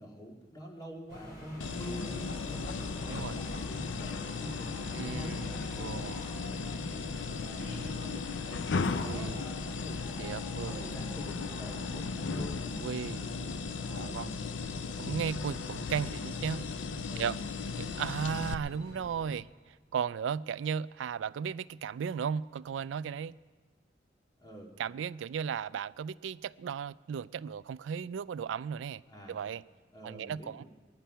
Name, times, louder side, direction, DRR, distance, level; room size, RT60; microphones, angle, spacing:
voice 1, 0.0-2.6 3.0-6.2 6.5-10.0 10.5-12.8 13.1-13.6 13.9-14.2 17.1-17.3 24.4-24.7 29.1-29.4 29.9-30.6, equal, 20° left, 2.2 m, -47 dB
sound 1, 1.1-19.3, left 1 dB, 55° left, 3.4 m, -47 dB
sound 2, 1.6-18.5, left 4 dB, 85° left, 0.6 m, -36 dB
voice 2, 3.1-3.4 4.9-6.2 8.0-8.1 9.0-9.5 10.2-10.8 12.8-13.2 13.9-14.4 14.7-16.7 17.2-17.4 17.8-23.4 24.8-29.0 29.3-29.6 30.0-30.6, right 7 dB, 85° right, 0.3 m, -36 dB
21.0 x 10.5 x 5.6 m
head